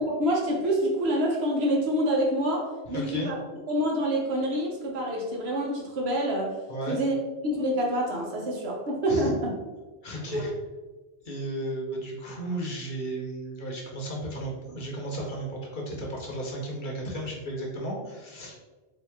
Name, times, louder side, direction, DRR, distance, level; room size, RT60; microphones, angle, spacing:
voice 1, 0.0-3.4 3.7-6.6 6.9-7.1 7.4-9.5 10.3-10.5, equal, 70° right, -1 dB, 1.1 m, -27 dB
voice 2, 2.9-3.3 6.7-7.0 9.1-9.3 10.0-10.5 11.2-18.6, right 1 dB, 50° left, -1 dB, 0.9 m, -34 dB
3.7 x 2.8 x 3.5 m, 1.2 s
omnidirectional pair, 1.1 m